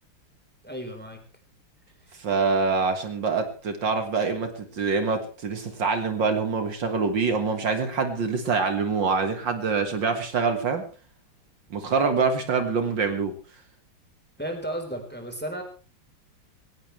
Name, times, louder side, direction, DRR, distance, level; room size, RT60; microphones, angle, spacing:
voice 1, 0.6-1.2 14.4-15.6, right 1 dB, 5° left, 4 dB, 4.0 m, -33 dB
voice 2, 2.2-10.8 11.7-13.3, right 4 dB, 65° right, 7 dB, 2.4 m, -25 dB
20.5 x 18.0 x 3.3 m, 0.34 s
omnidirectional pair, 2.2 m